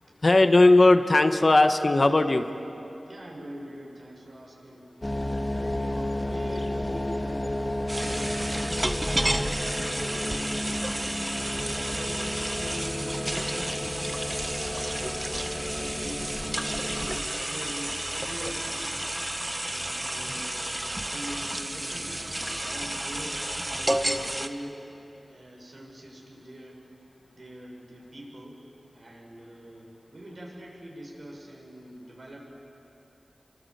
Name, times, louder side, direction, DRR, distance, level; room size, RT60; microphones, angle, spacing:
voice 1, 0.2-2.5, left 2 dB, 50° left, 7 dB, 1.3 m, -18 dB
voice 2, 2.9-10.8 11.5-14.1 14.9-18.9 19.6-23.5 23.7-26.8 27.2-28.6 28.9-32.4, right 1 dB, 65° right, -1 dB, 6.6 m, -43 dB
sound 1, 5.0-17.2, left 1 dB, 25° left, 1.6 m, -32 dB
sound 2, 7.9-24.5, right 1 dB, 20° right, 1.3 m, -31 dB
28.5 x 24.5 x 8.2 m, 3.0 s
wide cardioid pair, 65°, 0 cm